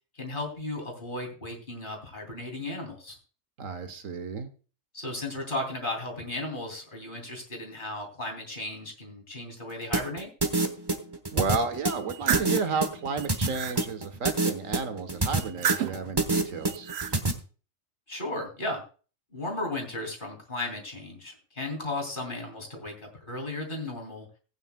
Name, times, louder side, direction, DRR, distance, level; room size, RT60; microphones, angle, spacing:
voice 1, 0.1-3.2 4.9-10.3 18.1-18.8 19.3-24.3, left 2 dB, 40° left, 1 dB, 3.0 m, -35 dB
voice 2, 3.6-4.5 11.3-16.9, right 4 dB, 85° right, 9 dB, 1.5 m, -32 dB
sound 1, 9.9-17.3, right 2 dB, 20° right, 1.0 m, -26 dB
sound 2, 11.9-12.6 13.1-13.8 15.4-16.1 16.7-17.2, right 8 dB, 60° right, 0.9 m, -31 dB
18.5 x 9.2 x 2.2 m, 0.37 s
omnidirectional pair, 1.3 m